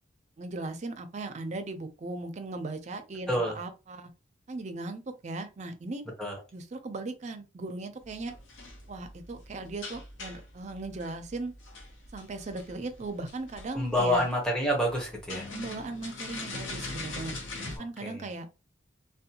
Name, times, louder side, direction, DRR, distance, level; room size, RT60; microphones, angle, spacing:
voice 1, 0.4-4.1 4.5-6.0 6.5-8.3 8.9-11.5 12.1-14.3 15.5-18.5, right 2 dB, 35° right, 0.4 m, -38 dB
voice 2, 3.3-3.6 6.2-6.4 13.7-15.5 18.0-18.2, equal, 5° left, 0.7 m, -28 dB
sound 1, 8.0-17.8, left 2 dB, 80° left, 0.6 m, -42 dB
2.5 x 2.1 x 2.8 m
head